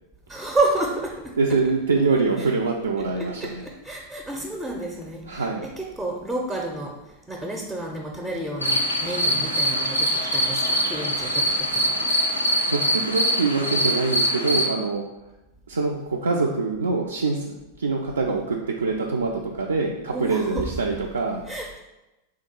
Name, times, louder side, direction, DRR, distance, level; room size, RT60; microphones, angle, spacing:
voice 1, 0.3-1.4 3.2-6.9 7.3-11.4 11.7-11.9 20.1-20.7 21.5-21.8, right 2 dB, 5° right, -1 dB, 0.5 m, -30 dB
voice 2, 1.4-3.6 5.3-5.7 12.6-15.0 15.7-21.4, right 4 dB, 75° right, -1 dB, 0.3 m, -24 dB
sound 1, 8.6-14.7, equal, 90° left, 0.5 m, -23 dB
3.6 x 2.3 x 4.4 m, 1.0 s
figure-of-eight pair, 90°, 0 cm